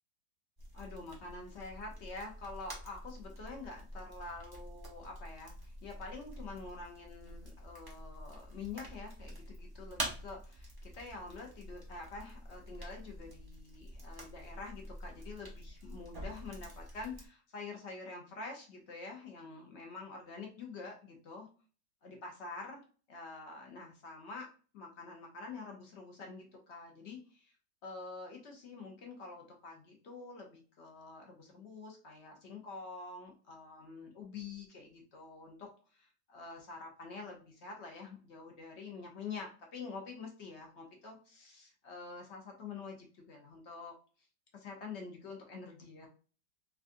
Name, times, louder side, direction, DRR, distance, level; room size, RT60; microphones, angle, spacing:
sound 1, 0.6-17.3, right 1 dB, 35° right, 0.3 m, -47 dB
voice 1, 0.7-21.5 22.0-22.8 23.1-24.5 24.7-27.5 27.8-43.9 44.5-46.1, left 4 dB, 60° left, 1 dB, 0.7 m, -47 dB
3.5 x 2.4 x 2.5 m, 0.38 s
omnidirectional pair, 1.8 m